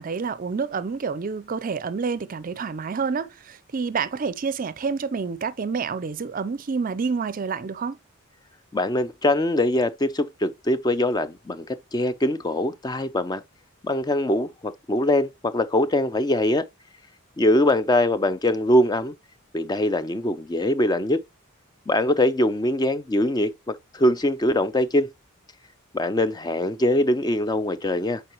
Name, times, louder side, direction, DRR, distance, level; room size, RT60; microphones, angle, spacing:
voice 1, 0.0-8.0, right 5 dB, 40° right, 0.4 m, -28 dB
voice 2, 8.7-13.4 13.8-16.7 17.4-19.1 19.5-21.2 21.9-25.1 25.9-28.2, left 1 dB, 20° left, 0.4 m, -22 dB
7.7 x 4.5 x 2.9 m
head